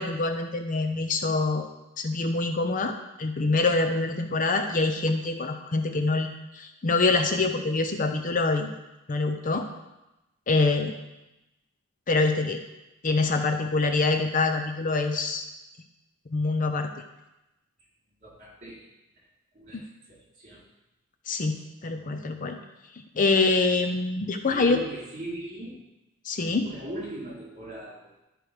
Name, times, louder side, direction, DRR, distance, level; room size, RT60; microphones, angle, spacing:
voice 1, 0.0-1.7 2.0-8.7 9.1-9.7 10.5-10.9 12.1-12.6 13.0-15.4 16.3-16.9 19.7-19.8 21.3-22.6 23.1-24.8 26.2-26.7, left 3 dB, 40° left, 6 dB, 0.5 m, -25 dB
voice 2, 18.2-18.9 19.5-20.6 24.5-25.8 26.6-28.2, right 1 dB, 40° right, -5 dB, 3.4 m, -39 dB
11.5 x 4.7 x 5.0 m, 0.96 s
head